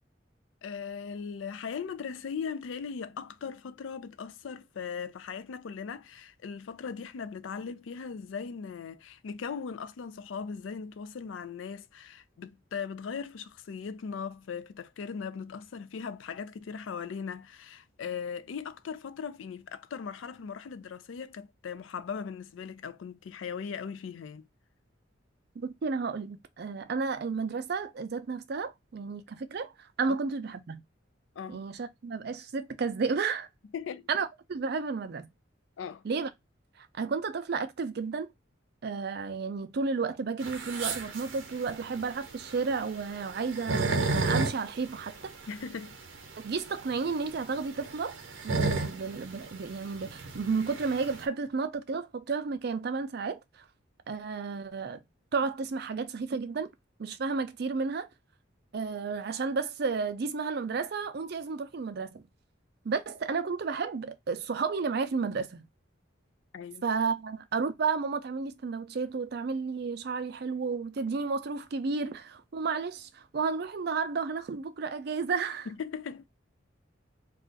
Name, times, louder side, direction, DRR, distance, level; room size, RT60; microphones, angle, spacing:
voice 1, 0.6-24.5 31.4-31.6 33.7-34.1 35.8-36.0 45.5-46.0 66.5-66.8 75.7-76.3, left 6 dB, 80° left, 0.4 m, -39 dB
voice 2, 25.6-30.8 31.5-33.5 34.1-35.3 36.0-36.3 36.8-38.3 38.8-45.3 46.4-48.2 48.4-53.6 54.1-55.0 55.3-56.7 57.0-58.1 58.7-62.2 62.8-65.7 66.8-75.7, right 4 dB, 55° right, 0.4 m, -32 dB
sound 1, 40.4-51.2, right 3 dB, 85° right, 0.7 m, -33 dB
2.4 x 2.3 x 3.7 m
head